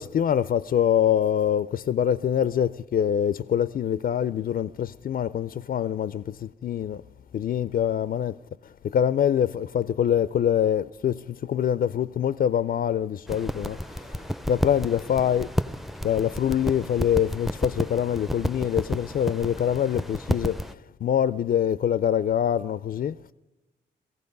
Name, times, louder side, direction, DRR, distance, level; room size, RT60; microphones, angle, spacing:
voice 1, 0.0-7.0 7.3-15.5 16.0-23.3, left 9 dB, 55° left, 0.4 m, -25 dB
sound 1, 13.3-20.7, equal, ahead, 0.5 m, -31 dB
18.0 x 15.0 x 5.3 m
cardioid pair, 70°, 18 cm